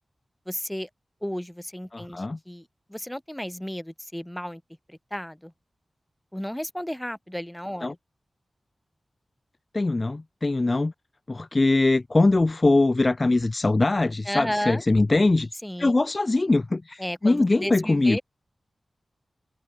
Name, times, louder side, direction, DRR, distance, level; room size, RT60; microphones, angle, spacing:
voice 1, 0.5-0.9 1.2-4.6 4.9-5.5 6.3-8.0 14.3-14.8 15.6-16.0 17.0-18.2, equal, 5° left, 5.7 m, -33 dB
voice 2, 1.9-2.4 7.8-7.9 9.7-10.9 11.3-15.5 15.8-18.2, left 2 dB, 35° left, 0.3 m, -22 dB
wide cardioid pair, 85°, 0 cm